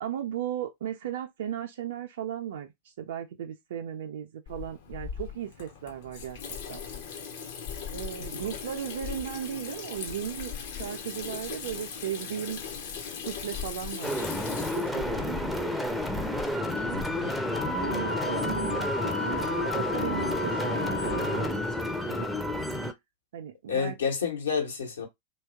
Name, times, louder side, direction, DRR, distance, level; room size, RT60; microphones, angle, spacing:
voice 1, 0.0-2.7 3.0-6.4 6.7-6.8 7.9-12.6 13.2-15.7 17.8-21.6 22.1-22.3 23.3-24.0, right 10 dB, 60° right, 0.4 m, -36 dB
Water tap faucet / Sink (filling or washing), 4.5-17.1, left 7 dB, 55° left, 0.8 m, -39 dB
voice 2, 8.2-8.5 16.9-17.3 23.7-25.1, left 6 dB, 70° left, 1.1 m, -30 dB
sound 1, 14.0-22.9, left 1 dB, ahead, 0.5 m, -30 dB
Wind instrument woodwind instrument, 17.5-21.7, left 4 dB, 90° left, 0.6 m, -35 dB
2.8 x 2.3 x 3.3 m
figure-of-eight pair, 90°, 0 cm